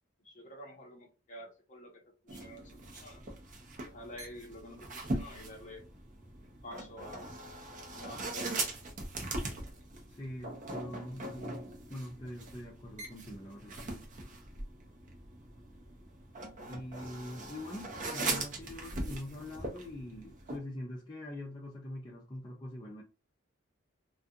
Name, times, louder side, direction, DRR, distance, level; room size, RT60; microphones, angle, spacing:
voice 1, 0.2-3.2 3.8-5.8 6.6-7.3 7.9-8.8, left 1 dB, 40° left, 0.9 m, -49 dB
sound 1, 2.3-20.6, right 2 dB, 40° right, 0.6 m, -41 dB
voice 2, 10.1-11.6 11.9-14.0 16.6-23.0, left 1 dB, 20° left, 0.5 m, -44 dB
2.3 x 2.3 x 2.7 m
head